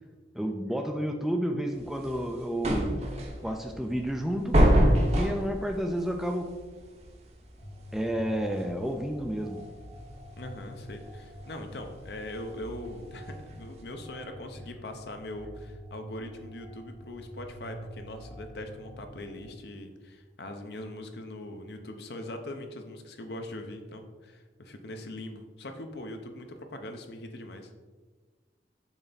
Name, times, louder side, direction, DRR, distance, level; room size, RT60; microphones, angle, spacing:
voice 1, 0.3-3.1 3.4-4.6 5.1-6.6 7.9-9.6, equal, ahead, 3 dB, 0.3 m, -31 dB
sound 1, 1.7-13.8, equal, 35° right, 0.7 m, -28 dB
sound 2, 7.6-19.5, equal, 35° left, 1.0 m, -47 dB
voice 2, 10.4-27.7, left 1 dB, 65° left, 5 dB, 0.7 m, -41 dB
7.1 x 3.4 x 4.0 m, 1.4 s
head